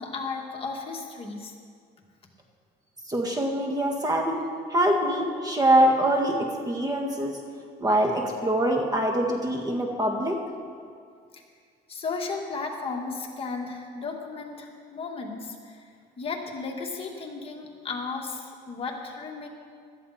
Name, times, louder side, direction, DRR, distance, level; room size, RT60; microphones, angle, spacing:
voice 1, 0.0-1.5 11.3-11.4 11.9-15.8 16.2-19.5, left 4 dB, 35° left, 0 dB, 2.2 m, -34 dB
voice 2, 3.1-4.4 4.7-7.4 7.8-10.4, right 1 dB, 20° right, 2 dB, 1.7 m, -24 dB
16.5 x 13.0 x 4.4 m, 2.2 s
cardioid pair, 110°, 17 cm